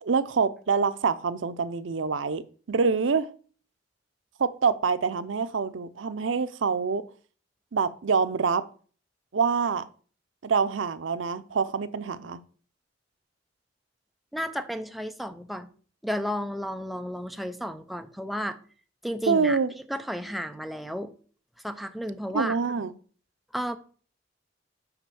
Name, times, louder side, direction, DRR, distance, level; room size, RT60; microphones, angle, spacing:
voice 1, 0.0-2.4 2.7-3.3 4.4-7.0 7.7-8.6 9.3-9.8 10.4-12.4 19.3-19.7 22.3-22.9, right 5 dB, 85° right, 0.6 m, -26 dB
voice 2, 14.3-15.7 16.0-18.6 19.0-19.6 19.9-21.2 21.6-22.6 23.5-23.8, equal, ahead, 0.6 m, -32 dB
5.9 x 5.3 x 6.9 m
head